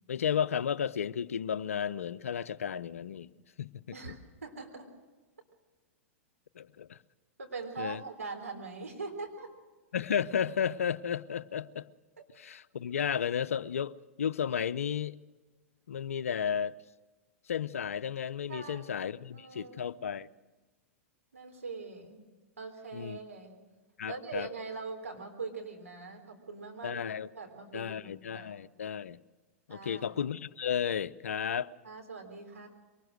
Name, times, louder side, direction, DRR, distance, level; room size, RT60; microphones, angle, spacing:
voice 1, 0.1-3.3 3.6-3.7 4.1-4.2 6.6-7.0 7.8-8.0 9.9-11.9 12.4-15.2 15.9-16.7 17.5-20.3 22.9-23.2 24.0-24.5 26.8-27.3 27.7-29.2 29.7-31.7, left 8 dB, 75° left, 0.6 m, -33 dB
voice 2, 3.9-4.9 7.4-9.5 12.2-12.3 18.5-19.9 21.3-22.2 22.6-23.6 24.1-28.6 29.7-30.1 31.8-32.7, right 4 dB, 85° right, 3.7 m, -42 dB
23.5 x 19.5 x 6.4 m
hypercardioid pair, 100°, 8 cm